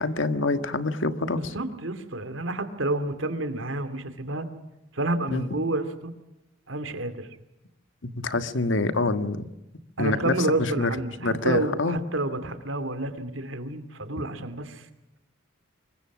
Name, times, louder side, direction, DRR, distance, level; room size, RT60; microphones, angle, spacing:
voice 1, 0.0-1.5 5.3-5.4 8.0-9.5 10.0-10.9 11.2-12.0, left 2 dB, 70° left, 10 dB, 1.6 m, -26 dB
voice 2, 1.4-4.5 4.9-6.1 6.7-7.3 10.0-14.9, right 2 dB, 80° right, 10 dB, 2.7 m, -29 dB
25.5 x 22.0 x 6.2 m, 0.93 s
head